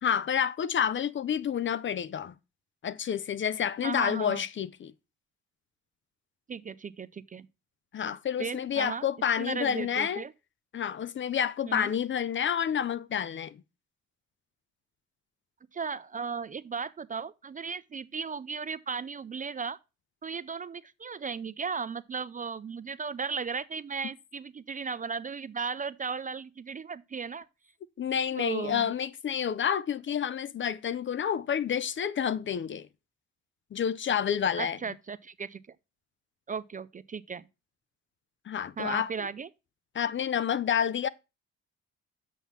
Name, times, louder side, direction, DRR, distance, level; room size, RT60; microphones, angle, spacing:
voice 1, 0.0-2.3 2.8-4.9 7.9-10.2 10.7-13.6 28.0-32.9 33.7-34.8 38.5-39.3 39.9-41.1, left 8 dB, 40° left, 0.5 m, -29 dB
voice 2, 3.8-4.4 6.5-7.5 8.4-9.1 9.4-10.3 11.7-11.9 15.7-19.8 20.2-27.5 28.4-28.9 34.6-35.6 36.5-37.5 38.8-39.5, right 5 dB, 30° right, 0.4 m, -36 dB
7.3 x 5.5 x 5.7 m
cardioid pair, 90°, 30 cm